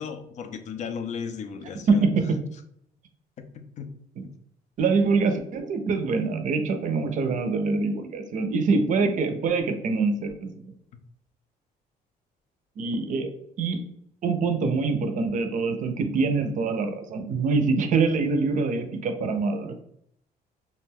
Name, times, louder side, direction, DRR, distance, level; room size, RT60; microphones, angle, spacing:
voice 1, 0.0-2.0 3.4-3.9 10.9-11.0, left 6 dB, 45° left, 8 dB, 0.4 m, -35 dB
voice 2, 1.9-2.4 4.2-4.3 4.8-10.7 12.8-13.3 13.6-13.8 14.2-19.7, right 4 dB, 50° right, 7 dB, 0.4 m, -24 dB
2.4 x 2.2 x 3.3 m, 0.72 s
cardioid pair, 110°, 17 cm